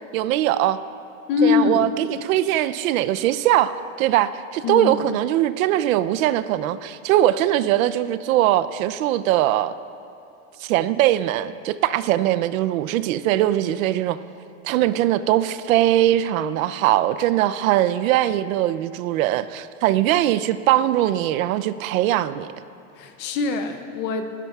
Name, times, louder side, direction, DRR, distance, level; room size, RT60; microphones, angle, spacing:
voice 1, 0.1-0.8 1.4-9.7 10.6-14.2 14.6-22.5, right 13 dB, 70° right, 14 dB, 0.6 m, -21 dB
voice 2, 1.3-1.9 4.6-5.0 22.9-24.3, left 5 dB, 25° left, 7 dB, 0.4 m, -23 dB
22.5 x 13.0 x 2.4 m, 2.8 s
supercardioid pair, 165°, 44 cm